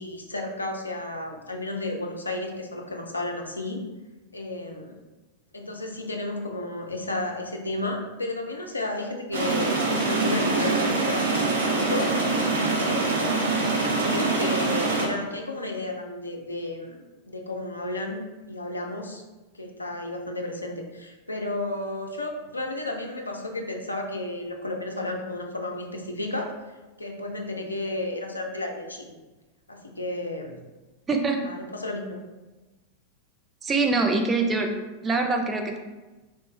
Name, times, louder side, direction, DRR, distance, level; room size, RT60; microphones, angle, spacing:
voice 1, 0.0-3.8 4.3-4.9 5.5-12.1 12.7-13.4 13.8-19.2 19.5-26.5 27.0-29.1 29.7-30.6 31.4-32.2, left 2 dB, 80° left, 2 dB, 0.5 m, -32 dB
sound 1, 9.3-15.1, right 3 dB, 65° right, 0.7 m, -24 dB
voice 2, 31.1-31.4 33.6-34.7 35.0-35.8, right 3 dB, 20° right, 3 dB, 0.4 m, -24 dB
3.1 x 2.9 x 3.3 m, 1.2 s
figure-of-eight pair, 90°, 0 cm